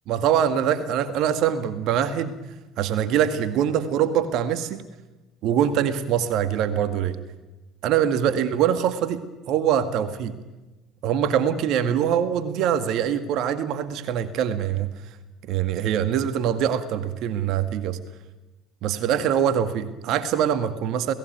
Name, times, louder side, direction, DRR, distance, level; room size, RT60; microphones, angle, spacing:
voice 1, 0.1-2.4 2.8-4.8 5.4-7.2 7.8-10.4 11.0-14.9 15.5-18.0 18.8-21.1, right 9 dB, 60° right, 10 dB, 1.9 m, -23 dB
29.0 x 18.0 x 9.3 m, 1.1 s
figure-of-eight pair, 60°, 0 cm